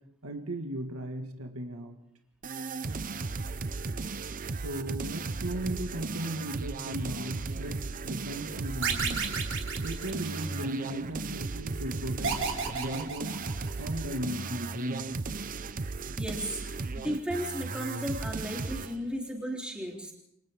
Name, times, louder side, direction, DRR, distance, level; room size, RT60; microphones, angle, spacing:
voice 1, 0.2-2.0 4.6-9.3 9.8-12.4 12.8-13.3 13.8-15.1, right 1 dB, 90° right, 4 dB, 1.9 m, -36 dB
sound 1, 2.4-19.0, right 3 dB, 40° right, 0.7 m, -36 dB
sound 2, 8.8-10.8 12.2-14.0, right 5 dB, 60° right, 3.4 m, -32 dB
voice 2, 16.2-16.6 17.0-20.1, equal, 5° right, -1 dB, 3.6 m, -35 dB
29.0 x 24.5 x 3.7 m, 0.77 s
head